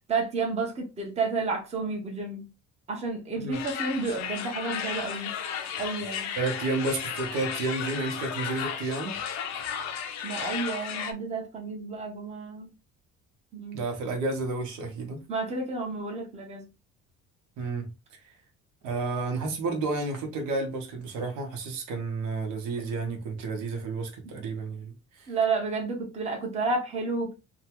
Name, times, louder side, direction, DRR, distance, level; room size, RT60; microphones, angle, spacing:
voice 1, 0.1-2.5 2.9-5.4 5.8-6.4 10.2-12.7 13.5-13.8 15.3-16.7 24.2-24.3 25.3-27.3, right 3 dB, 20° right, 0.7 m, -31 dB
sound 1, 3.5-11.1, left 8 dB, 65° left, 0.6 m, -34 dB
voice 2, 6.4-9.2 13.7-15.2 17.6-17.9 18.8-25.3, right 3 dB, 85° right, 1.0 m, -31 dB
2.8 x 2.3 x 2.8 m
cardioid pair, 155°, 29 cm